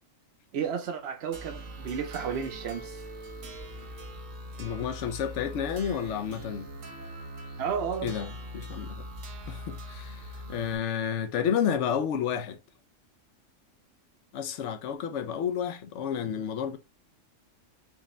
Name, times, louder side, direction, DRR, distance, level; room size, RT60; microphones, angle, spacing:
voice 1, 0.5-3.0 7.6-8.1, right 7 dB, 60° right, 0.8 m, -32 dB
sound 1, 1.3-10.8, equal, 85° right, 1.3 m, -42 dB
voice 2, 4.6-6.7 8.0-9.0 9.5-12.6 14.3-16.8, left 8 dB, 70° left, 0.9 m, -31 dB
4.9 x 2.2 x 3.0 m
omnidirectional pair, 1.3 m